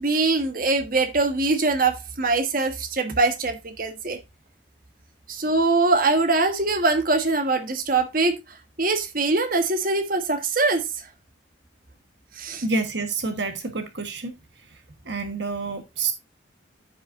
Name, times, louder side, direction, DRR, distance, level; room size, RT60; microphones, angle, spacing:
voice 1, 0.0-4.2 5.3-8.4 8.8-10.8 12.4-12.6, right 3 dB, 50° right, 1.4 m, -22 dB
voice 2, 12.6-14.3 15.0-16.1, right 3 dB, 65° right, 1.3 m, -28 dB
14.5 x 5.5 x 2.6 m
head